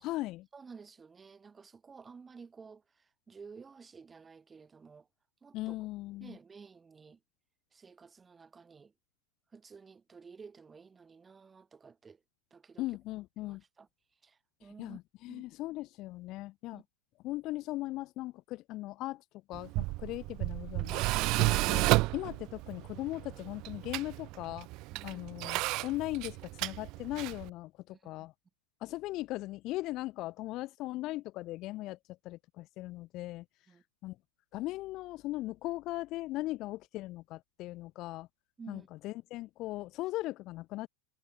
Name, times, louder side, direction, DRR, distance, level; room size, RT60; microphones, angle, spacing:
voice 1, 0.0-0.5 5.5-6.4 12.8-13.6 14.8-16.8 17.2-21.1 21.4-21.9 22.1-24.7 25.0-28.3 28.8-33.5 34.0-34.2 34.5-38.3 38.7-40.9, left 18 dB, 35° left, 2.1 m, -39 dB
voice 2, 0.5-5.1 5.4-5.9 6.2-7.2 7.7-8.9 9.5-12.2 12.5-12.9 13.4-13.9 14.2-15.0 15.3-15.4 16.7-16.8 24.9-25.2 27.9-28.3 33.7-33.8 38.6-38.9, right 5 dB, 15° right, 5.0 m, -53 dB
Tools, 19.5-27.5, right 22 dB, 40° right, 0.9 m, -32 dB
figure-of-eight pair, 90°, 0 cm